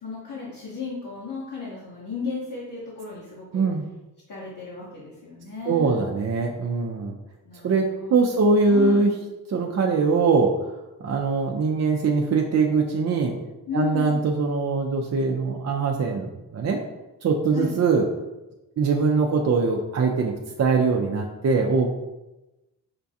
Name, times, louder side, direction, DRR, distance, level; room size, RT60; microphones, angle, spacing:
voice 1, 0.0-3.7 4.3-6.0 7.4-9.0 13.7-14.2 17.5-17.7, left 5 dB, 60° left, -6 dB, 1.2 m, -34 dB
voice 2, 3.5-3.9 5.7-7.1 7.6-9.1 9.5-10.6 11.0-13.3 13.7-16.2 16.5-16.8 17.2-18.0 18.8-21.9, right 4 dB, 40° right, 1 dB, 0.5 m, -22 dB
5.9 x 2.3 x 2.7 m, 1.0 s
cardioid pair, 60°, 39 cm